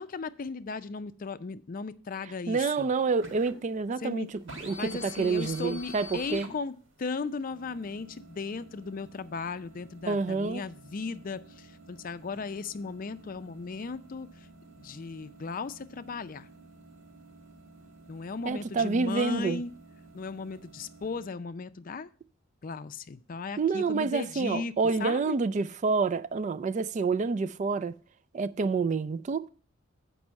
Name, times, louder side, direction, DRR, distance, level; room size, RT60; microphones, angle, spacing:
voice 1, 0.0-2.9 4.0-4.3 4.6-6.7 7.0-14.3 14.8-16.5 18.1-19.7 20.1-22.1 22.6-24.7 25.0-25.4, left 4 dB, 45° left, 0.5 m, -36 dB
voice 2, 2.5-4.3 4.6-6.5 10.0-10.6 18.4-19.6 23.6-27.9 28.3-29.5, right 4 dB, 35° right, 0.3 m, -28 dB
sound 1, 2.7-21.3, equal, 75° right, 1.7 m, -50 dB
7.5 x 5.4 x 7.0 m
head